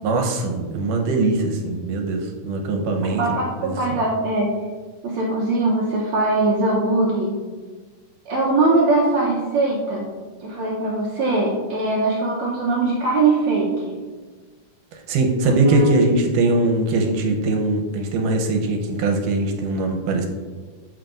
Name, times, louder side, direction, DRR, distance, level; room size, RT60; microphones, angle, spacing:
voice 1, 0.0-3.2 3.6-4.0 14.9-20.3, right 2 dB, 85° right, 3 dB, 2.4 m, -21 dB
voice 2, 3.1-4.5 5.0-7.3 8.3-10.1 10.4-14.0 15.4-15.9, right 3 dB, 70° right, -3 dB, 2.0 m, -21 dB
14.0 x 4.6 x 2.5 m, 1.4 s
omnidirectional pair, 3.7 m